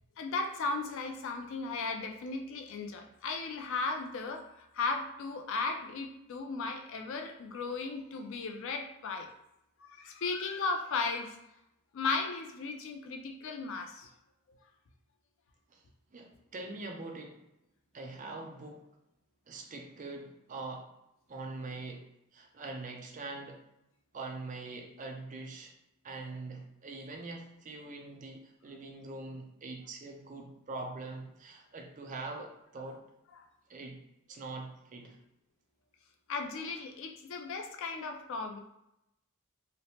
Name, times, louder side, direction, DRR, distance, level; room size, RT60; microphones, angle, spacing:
voice 1, 0.2-9.3 9.8-11.4 11.9-14.1 36.3-38.6, left 4 dB, 60° left, 4 dB, 0.4 m, -36 dB
voice 2, 16.1-17.4 17.9-18.8 19.5-20.9 21.3-22.0 22.3-23.6 24.1-25.7 26.0-33.0 33.7-34.0 34.3-35.2, right 3 dB, 35° right, 2 dB, 0.4 m, -43 dB
3.0 x 2.0 x 2.7 m, 0.83 s
head